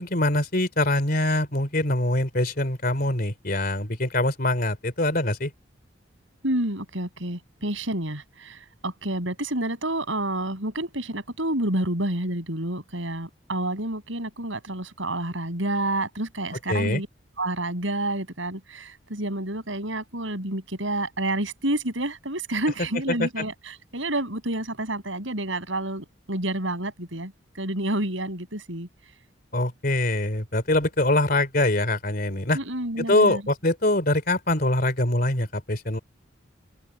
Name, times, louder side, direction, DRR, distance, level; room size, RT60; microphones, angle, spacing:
voice 1, 0.0-5.5 16.7-17.0 23.2-23.4 29.5-32.6 33.0-36.0, left 1 dB, 45° left, 3.4 m, -24 dB
voice 2, 6.4-8.6 8.8-17.1 17.4-27.3 27.6-28.9 32.5-33.4, right 1 dB, 70° right, 7.4 m, -29 dB
open air
head